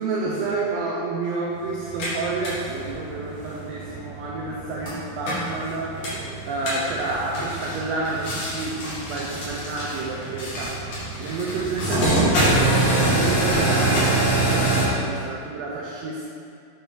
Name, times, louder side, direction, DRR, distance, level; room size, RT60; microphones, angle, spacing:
voice 1, 0.0-6.0 6.5-10.8 11.2-16.3, right 3 dB, 75° right, -3 dB, 1.6 m, -29 dB
sound 1, 1.8-14.9, right 1 dB, 85° left, 3.4 m, -25 dB
8.6 x 5.8 x 3.6 m, 2.5 s
omnidirectional pair, 3.4 m